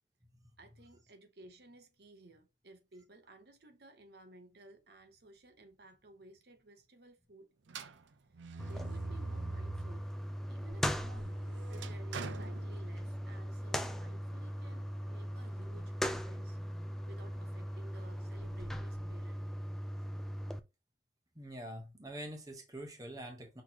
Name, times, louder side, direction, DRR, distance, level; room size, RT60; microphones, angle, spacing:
voice 1, 0.6-7.5 8.6-10.1 10.5-11.4 11.7-19.4, right 2 dB, 60° right, 0.8 m, -57 dB
sound 1, 7.7-10.1 10.5-13.4, right 4 dB, 85° right, 0.5 m, -45 dB
sound 2, 8.6-20.6, equal, ahead, 0.3 m, -39 dB
voice 2, 21.3-23.6, right 1 dB, 20° right, 1.0 m, -45 dB
5.9 x 3.2 x 2.8 m
head